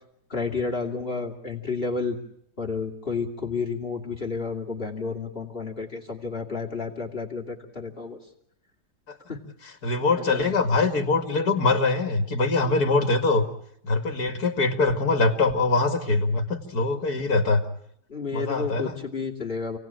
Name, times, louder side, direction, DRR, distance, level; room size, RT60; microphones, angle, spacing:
voice 1, 0.3-2.2 2.6-8.2 9.3-9.4 10.1-10.5 18.1-19.8, left 4 dB, 35° left, -1 dB, 3.0 m, -31 dB
voice 2, 9.8-13.4 13.8-17.6 18.3-19.0, left 3 dB, 65° left, 6 dB, 2.7 m, -23 dB
29.0 x 18.0 x 9.0 m, 0.74 s
omnidirectional pair, 1.8 m